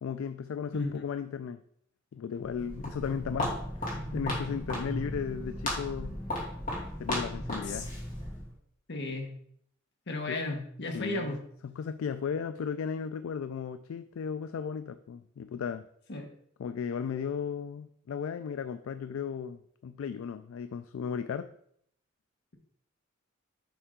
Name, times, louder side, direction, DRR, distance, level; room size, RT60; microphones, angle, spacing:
voice 1, 0.0-1.6 2.1-6.2 7.0-7.9 10.3-10.4 10.9-11.4 11.6-15.9 16.6-21.5, left 7 dB, 75° left, 11 dB, 0.3 m, -35 dB
Walk footsteps, 2.4-8.5, left 1 dB, 40° left, 2.3 m, -35 dB
voice 2, 8.9-9.3 10.1-11.4 16.1-16.3, left 2 dB, 60° left, 3 dB, 1.1 m, -34 dB
7.0 x 5.4 x 3.7 m, 0.68 s
head